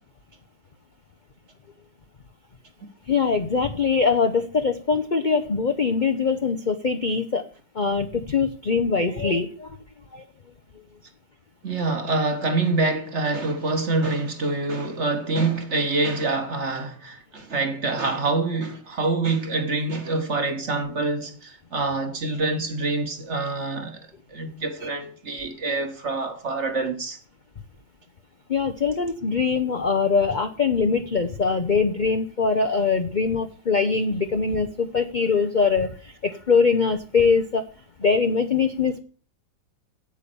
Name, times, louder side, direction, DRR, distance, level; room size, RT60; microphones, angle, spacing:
voice 1, 3.1-7.4 7.7-9.8 10.1-10.2 28.5-37.6 38.0-39.0, left 5 dB, 60° left, 0.4 m, -22 dB
voice 2, 11.6-27.2, right 3 dB, 40° right, 1.6 m, -26 dB
8.7 x 8.7 x 6.9 m
omnidirectional pair, 2.0 m